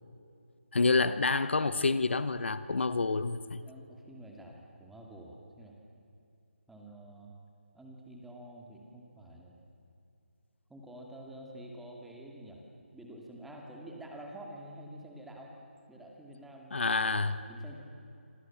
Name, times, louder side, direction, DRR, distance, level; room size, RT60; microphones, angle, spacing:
voice 1, 0.7-3.6 16.7-17.4, left 3 dB, 65° left, 13 dB, 1.3 m, -28 dB
voice 2, 3.6-5.8 6.7-7.3 7.7-9.6 10.7-12.6 12.9-15.6 15.9-17.7, right 1 dB, ahead, -1 dB, 2.4 m, -48 dB
27.0 x 26.5 x 7.4 m, 2.7 s
figure-of-eight pair, 165°, 7 cm